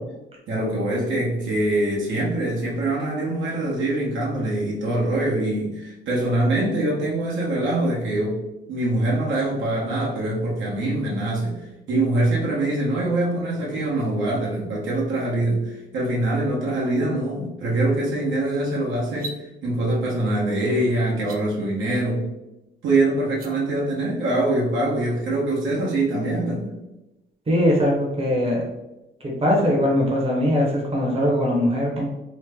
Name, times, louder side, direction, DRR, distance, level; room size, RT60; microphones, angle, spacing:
voice 1, 0.5-8.4 8.7-19.3 19.6-22.2 22.8-26.7, right 1 dB, 75° right, -5 dB, 1.1 m, -24 dB
sound 1, 19.1-19.4 21.1-21.4 23.2-23.5, right 3 dB, 50° right, 0.4 m, -36 dB
voice 2, 27.5-28.7 29.2-32.1, equal, 30° right, -2 dB, 0.9 m, -21 dB
3.1 x 2.1 x 3.5 m, 0.96 s
cardioid pair, 90°, 20 cm